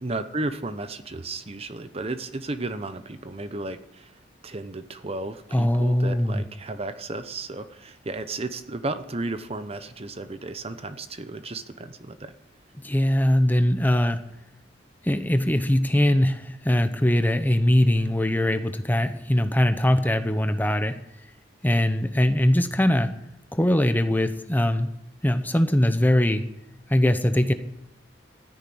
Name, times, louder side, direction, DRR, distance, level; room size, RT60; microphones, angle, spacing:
voice 1, 0.0-4.1 4.4-12.3, right 2 dB, 35° right, 11 dB, 0.8 m, -33 dB
voice 2, 5.5-6.4 12.8-14.2 15.0-20.9 21.6-23.1 23.5-24.9 25.2-26.4 26.9-27.5, left 1 dB, 10° left, 9 dB, 0.9 m, -21 dB
13.5 x 10.5 x 8.6 m, 0.80 s
head